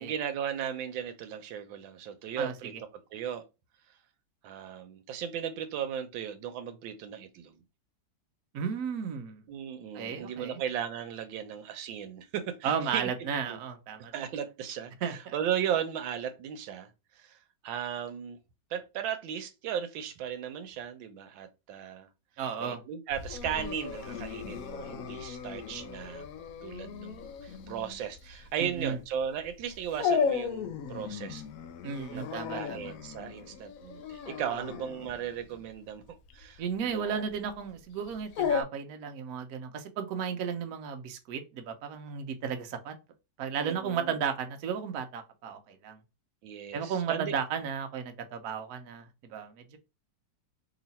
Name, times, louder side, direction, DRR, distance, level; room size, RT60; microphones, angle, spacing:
voice 1, 0.0-2.7 3.1-3.4 4.4-7.5 9.5-13.1 13.4-13.6 14.0-16.9 17.1-17.4 17.6-18.4 18.7-22.1 22.6-26.2 26.6-31.4 32.1-36.0 36.3-37.2 43.6-44.2 46.4-47.3, right 9 dB, 85° right, 1.4 m, -36 dB
voice 2, 2.4-2.8 8.5-9.4 9.9-10.6 12.6-14.1 15.0-15.3 22.4-22.8 28.6-29.0 31.8-32.9 34.5-34.6 36.6-42.9 43.4-46.0 46.7-49.8, right 7 dB, 65° right, 1.0 m, -34 dB
Dog, 23.1-38.6, left 6 dB, 80° left, 0.7 m, -36 dB
3.1 x 2.9 x 4.1 m
omnidirectional pair, 2.1 m